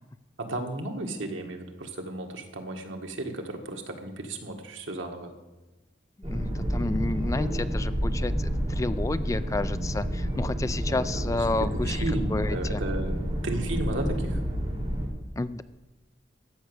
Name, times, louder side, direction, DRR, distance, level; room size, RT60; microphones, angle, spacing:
voice 1, 0.4-5.3 11.9-14.4, right 1 dB, 85° right, 3 dB, 1.7 m, -34 dB
voice 2, 6.2-12.8 15.4-15.6, left 2 dB, 15° left, 13 dB, 0.3 m, -31 dB
sound 1, 6.2-15.1, equal, 35° right, 3.6 m, -29 dB
14.5 x 6.0 x 8.1 m, 1.1 s
head